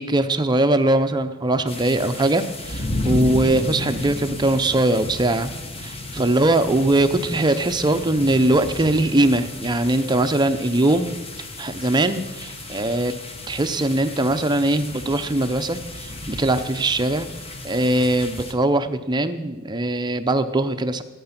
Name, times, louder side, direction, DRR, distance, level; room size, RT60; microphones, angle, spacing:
voice 1, 0.0-5.5 5.8-11.2 11.6-13.1 13.5-17.3 17.6-21.0, right 2 dB, 20° right, 8 dB, 0.6 m, -21 dB
sound 1, 1.7-18.5, left 2 dB, 30° left, 1.1 m, -33 dB
15.5 x 8.7 x 5.9 m, 1.2 s
head